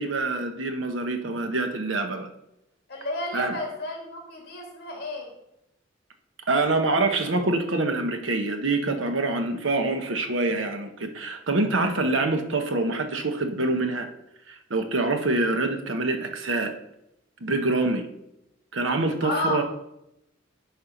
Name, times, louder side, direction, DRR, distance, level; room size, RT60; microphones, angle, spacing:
voice 1, 0.0-2.3 3.3-3.6 6.5-14.1 14.5-16.7 17.4-18.0 18.7-19.6, right 2 dB, 85° right, 6 dB, 1.1 m, -25 dB
voice 2, 2.9-5.3 19.2-19.6, left 2 dB, 55° left, -1 dB, 2.7 m, -31 dB
10.0 x 4.3 x 5.2 m, 0.85 s
head